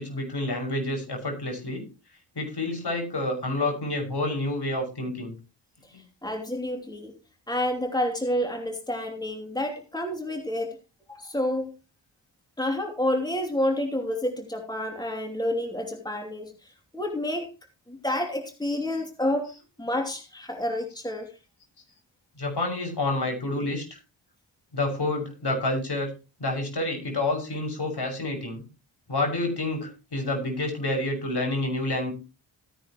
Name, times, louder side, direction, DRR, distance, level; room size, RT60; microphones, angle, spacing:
voice 1, 0.0-1.8 2.4-5.3 5.9-6.0 22.4-24.0 24.7-26.1 26.4-28.6 29.1-32.1, left 2 dB, 55° left, 3 dB, 6.2 m, -28 dB
voice 2, 5.9-7.1 7.5-10.8 11.1-11.7 12.6-17.5 17.9-19.5 19.8-21.3, left 1 dB, 10° left, 3 dB, 2.8 m, -29 dB
16.5 x 10.0 x 3.0 m, 0.30 s
cardioid pair, 50°, 47 cm